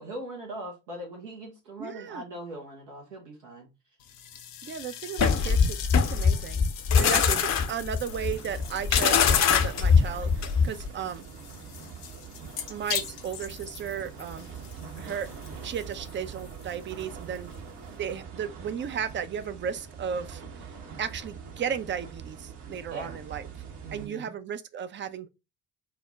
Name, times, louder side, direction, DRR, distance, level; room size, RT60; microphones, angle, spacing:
voice 1, 0.0-3.7 7.0-7.4 14.8-15.1 22.9-23.2 23.8-24.3, right 1 dB, 80° right, 0.9 m, -41 dB
voice 2, 1.8-2.3 4.6-5.8 6.1-6.7 7.0-11.3 12.7-14.5 15.0-15.3 15.6-17.5 18.0-20.7 21.0-23.5 23.9-25.3, right 8 dB, 25° right, 0.4 m, -35 dB
sound 1, 4.0-18.2, left 9 dB, 75° left, 0.6 m, -42 dB
sound 2, 5.2-10.9, left 6 dB, 35° left, 0.6 m, -22 dB
sound 3, 8.1-24.1, right 6 dB, 55° right, 1.1 m, -44 dB
4.4 x 2.1 x 3.6 m
figure-of-eight pair, 45°, 48 cm